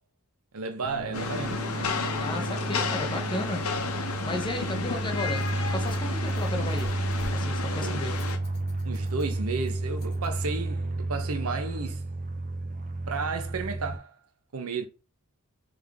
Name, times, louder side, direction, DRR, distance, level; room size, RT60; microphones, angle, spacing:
voice 1, 0.5-1.6 7.8-8.0 8.8-12.0 13.1-14.1 14.5-14.9, right 4 dB, 80° right, 0.8 m, -33 dB
sound 1, 0.8-14.0, right 2 dB, 35° right, 0.5 m, -32 dB
Rain, 1.1-8.4, left 5 dB, 75° left, 0.8 m, -33 dB
voice 2, 2.2-3.6 3.9-7.0 7.3-8.1, left 2 dB, 20° left, 0.7 m, -34 dB
Rattle, 5.0-10.3, left 1 dB, 45° left, 1.7 m, -50 dB
3.6 x 3.5 x 3.5 m
head